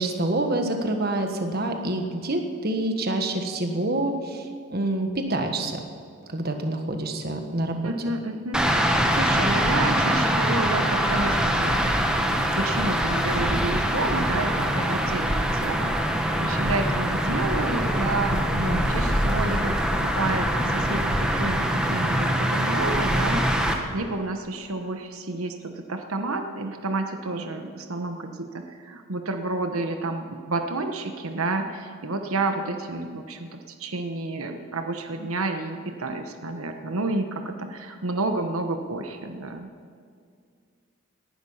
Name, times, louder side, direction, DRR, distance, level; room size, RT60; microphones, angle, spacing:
voice 1, 0.0-4.4 4.7-5.8 6.3-7.9 18.5-19.1, right 1 dB, 45° right, 5 dB, 1.5 m, -27 dB
voice 2, 7.8-11.8 12.3-18.4 18.9-39.7, right 2 dB, 85° right, 6 dB, 1.1 m, -30 dB
sound 1, 8.5-23.7, equal, 5° right, 1.2 m, -23 dB
19.0 x 11.5 x 5.7 m, 2.2 s
head